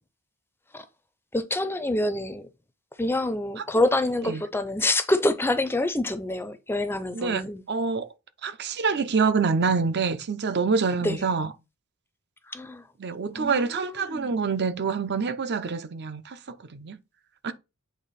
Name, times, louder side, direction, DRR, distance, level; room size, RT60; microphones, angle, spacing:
voice 1, 1.3-2.5 3.0-7.6 11.0-11.2 12.5-12.8 13.3-14.3, left 2 dB, 10° left, 0.5 m, -26 dB
voice 2, 7.1-8.1 8.4-11.5 13.0-17.0 17.4-17.5, right 5 dB, 50° right, 0.6 m, -26 dB
8.3 x 3.3 x 4.1 m
head